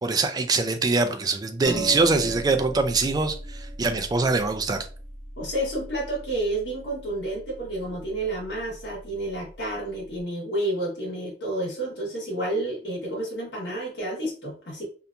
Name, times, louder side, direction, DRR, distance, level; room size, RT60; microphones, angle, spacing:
voice 1, 0.0-4.9, right 3 dB, 20° right, 7 dB, 0.3 m, -23 dB
sound 1, 1.6-10.2, right 2 dB, 5° right, 0.9 m, -39 dB
voice 2, 5.4-14.9, right 1 dB, 75° left, -4 dB, 1.1 m, -30 dB
2.7 x 2.5 x 2.2 m, 0.39 s
head